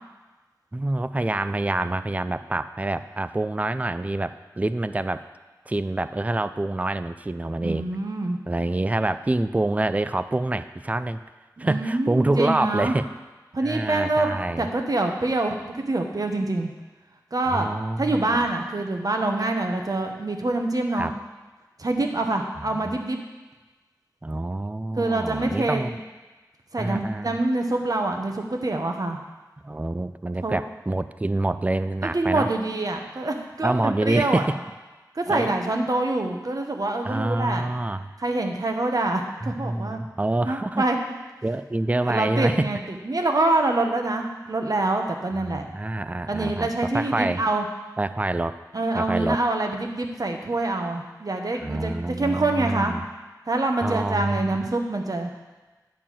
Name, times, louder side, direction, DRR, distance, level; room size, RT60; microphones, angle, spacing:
voice 1, 0.7-5.2 5.7-7.9 8.5-11.2 11.6-13.1 13.6-14.7 17.4-18.5 20.9-21.1 22.7-23.0 24.2-26.0 26.8-27.4 29.6-32.5 33.6-34.6 35.3-35.6 37.0-38.1 39.4-40.8 41.4-42.7 45.5-47.4 48.0-48.6 48.9-49.4 51.6-53.0 53.8-54.7, right 2 dB, 20° right, 12 dB, 0.4 m, -26 dB
voice 2, 7.6-8.4 11.6-12.9 13.5-14.3 14.6-16.7 17.3-17.7 18.0-21.1 21.8-23.2 25.0-25.8 26.7-29.2 30.4-30.6 32.1-34.4 35.1-37.7 38.2-40.0 40.4-41.0 42.0-42.8 43.1-45.6 46.3-47.6 48.7-52.9 53.5-55.3, right 2 dB, 55° right, 3 dB, 1.1 m, -25 dB
10.5 x 4.6 x 7.4 m, 1.2 s
wide cardioid pair, 65°, 7 cm